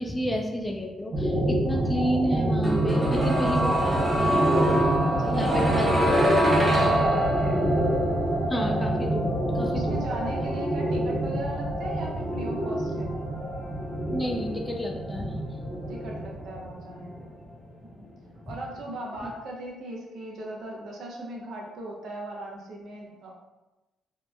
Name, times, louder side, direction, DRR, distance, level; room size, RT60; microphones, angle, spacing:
voice 1, 0.0-4.4 5.3-5.9 8.5-10.0 14.1-15.4 18.5-18.6 19.2-19.3, equal, 15° left, 1 dB, 0.4 m, -30 dB
sound 1, 1.1-17.2, right 1 dB, 40° right, 1.0 m, -27 dB
sound 2, 2.6-14.5 14.7-14.8, equal, 20° right, 0.7 m, -27 dB
sound 3, 3.4-19.0, left 2 dB, 90° left, 0.8 m, -43 dB
voice 2, 5.1-7.6 9.6-13.2 15.9-17.3 17.9-18.1 18.5-23.3, right 1 dB, 75° right, -2 dB, 0.6 m, -38 dB
2.8 x 2.1 x 2.3 m, 1.0 s
cardioid pair, 90°, 0 cm